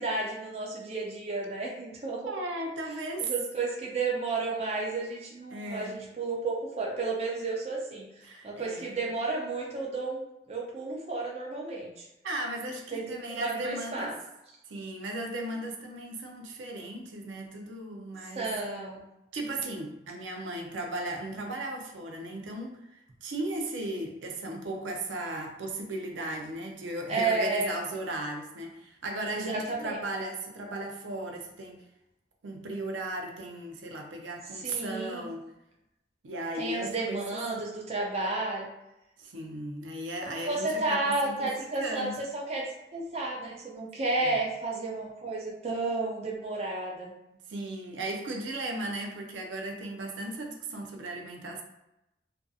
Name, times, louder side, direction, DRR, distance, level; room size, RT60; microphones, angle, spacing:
voice 1, 0.0-2.3 2.8-2.9 3.2-12.1 12.9-14.1 18.4-19.0 27.1-27.7 29.4-30.0 34.5-35.3 36.6-38.7 40.2-42.7 42.9-47.1, right 3 dB, 35° right, -2 dB, 0.4 m, -32 dB
voice 2, 2.2-3.3 5.5-6.0 8.2-8.9 12.2-14.1 14.7-18.5 19.3-22.8 23.2-31.8 32.4-35.4 36.2-37.4 39.2-41.5 41.8-42.2 44.2-44.4 47.5-51.6, right 1 dB, 90° right, 2 dB, 0.5 m, -36 dB
2.6 x 2.5 x 2.3 m, 0.89 s
head